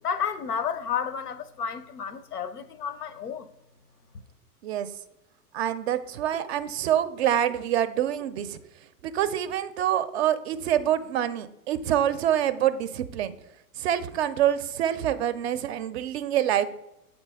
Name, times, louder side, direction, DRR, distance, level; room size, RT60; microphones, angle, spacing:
voice 1, 0.0-3.5, left 7 dB, 80° left, 0.7 m, -31 dB
voice 2, 5.5-8.6 9.0-13.3 13.8-16.7, right 11 dB, 45° right, 0.5 m, -26 dB
7.8 x 4.0 x 3.4 m
figure-of-eight pair, 100°, 46 cm